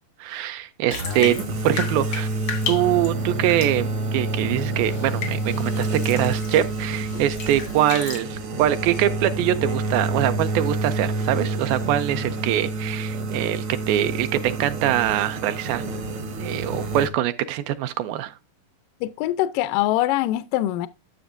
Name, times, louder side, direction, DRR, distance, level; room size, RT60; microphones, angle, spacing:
voice 1, 0.2-1.4 1.6-2.3 2.7-15.8 16.4-18.3, right 12 dB, 80° right, 2.3 m, -23 dB
Bathtub (filling or washing), 0.9-8.2, left 6 dB, 65° left, 1.1 m, -35 dB
sound 1, 0.9-17.1, right 2 dB, 60° right, 1.4 m, -28 dB
voice 2, 19.0-20.9, left 14 dB, 80° left, 2.0 m, -23 dB
12.0 x 7.0 x 2.5 m
omnidirectional pair, 4.3 m